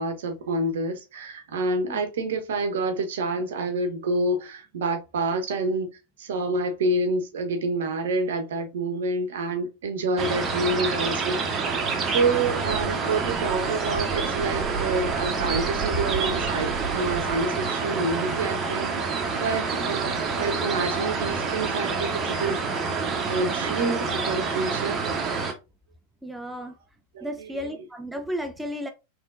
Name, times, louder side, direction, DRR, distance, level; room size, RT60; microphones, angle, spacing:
voice 1, 0.0-5.9 6.2-11.6 12.1-22.9 23.3-25.0 27.1-27.7, right 2 dB, 60° right, 0.8 m, -28 dB
sound 1, 10.2-25.5, right 4 dB, 25° right, 0.8 m, -27 dB
voice 2, 26.2-26.7 27.2-28.9, equal, 5° right, 0.4 m, -33 dB
3.6 x 3.1 x 2.6 m
figure-of-eight pair, 90°, 0 cm